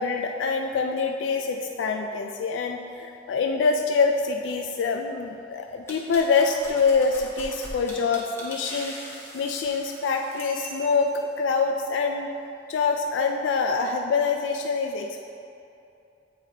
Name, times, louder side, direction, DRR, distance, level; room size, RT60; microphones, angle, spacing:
voice 1, 0.0-11.1 11.4-12.3 12.7-15.2, left 4 dB, 85° left, 3 dB, 0.3 m, -25 dB
sound 1, 5.9-11.2, equal, 15° left, 0.8 m, -41 dB
8.1 x 4.7 x 2.8 m, 2.7 s
head